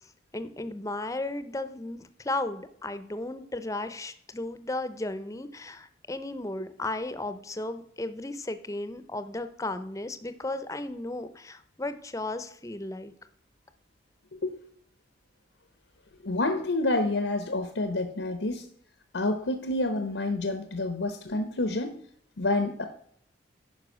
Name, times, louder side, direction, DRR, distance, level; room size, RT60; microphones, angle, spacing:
voice 1, 0.3-13.1, left 2 dB, 15° left, 11 dB, 0.6 m, -35 dB
voice 2, 16.2-18.7 19.1-22.0 22.4-22.8, left 2 dB, 85° left, 8 dB, 0.9 m, -28 dB
9.7 x 5.3 x 6.3 m, 0.63 s
head